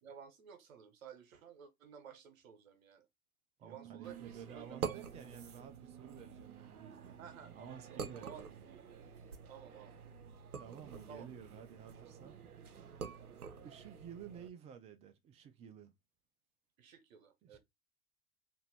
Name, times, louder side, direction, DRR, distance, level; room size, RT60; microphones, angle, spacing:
voice 1, 0.0-3.1 3.6-5.0 7.2-8.8 9.5-10.0 11.1-11.3 16.8-17.6, right 8 dB, 65° right, 1.1 m, -54 dB
voice 2, 3.6-8.7 10.6-12.4 13.6-15.9 17.4-17.6, right 8 dB, 15° right, 0.4 m, -53 dB
sound 1, 3.7-8.9, right 13 dB, 50° right, 0.7 m, -56 dB
Water Bottle Set Down, 4.0-14.5, right 6 dB, 85° right, 0.6 m, -48 dB
3.0 x 2.6 x 4.2 m
figure-of-eight pair, 85°, 43 cm